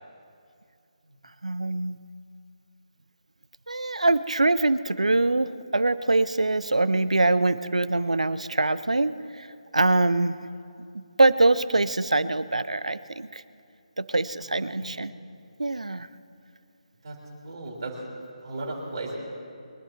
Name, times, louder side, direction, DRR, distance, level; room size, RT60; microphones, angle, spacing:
voice 1, 1.4-2.0 3.7-9.5 9.7-10.5 10.9-13.4 14.0-15.1 15.6-16.1, right 2 dB, 70° right, 15 dB, 0.6 m, -24 dB
voice 2, 17.4-18.0 18.4-19.2, right 2 dB, 45° right, -3 dB, 3.6 m, -35 dB
23.0 x 11.5 x 4.6 m, 2.4 s
figure-of-eight pair, 145°, 4 cm